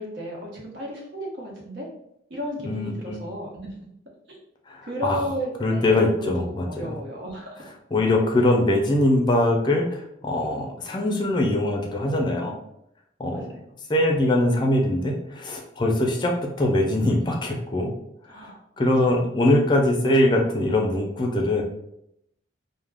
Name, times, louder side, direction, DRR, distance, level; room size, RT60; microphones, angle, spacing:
voice 1, 0.0-1.9 2.3-3.7 4.3-4.4 4.8-7.6 13.3-13.6 18.3-18.6 19.0-19.1, equal, 85° right, -2 dB, 0.9 m, -33 dB
voice 2, 2.6-3.2 4.7-5.2 5.6-6.9 7.9-12.5 13.2-13.5 13.9-17.9 18.2-18.5 18.8-21.6, left 1 dB, 25° left, 1 dB, 0.4 m, -22 dB
2.3 x 2.1 x 3.3 m, 0.78 s
head